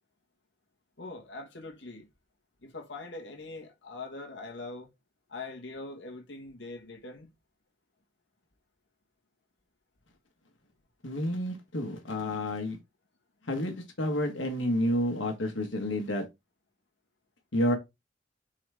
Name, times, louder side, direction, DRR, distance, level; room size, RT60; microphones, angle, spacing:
voice 1, 1.0-2.1 2.6-4.9 5.3-7.3, left 3 dB, 65° left, 1.6 m, -42 dB
voice 2, 11.0-12.8 13.5-16.2 17.5-17.8, left 1 dB, 85° left, 1.4 m, -30 dB
7.2 x 3.9 x 3.5 m
head